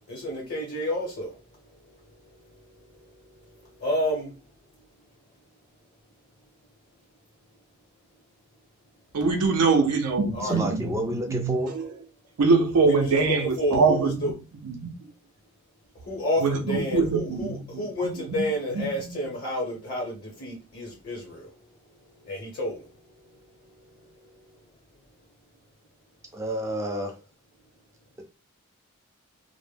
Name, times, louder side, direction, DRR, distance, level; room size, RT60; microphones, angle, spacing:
voice 1, 0.1-1.3 3.8-4.3 10.3-10.6 12.9-14.3 16.1-21.5 22.3-22.8, left 1 dB, 45° left, 0.8 m, -30 dB
voice 2, 9.1-11.9 12.4-14.3 14.6-15.1 16.4-18.5 18.7-19.2, right 4 dB, 85° right, 0.5 m, -24 dB
voice 3, 10.4-11.7 26.3-27.2, right 1 dB, 15° right, 0.4 m, -29 dB
2.1 x 2.0 x 3.1 m
head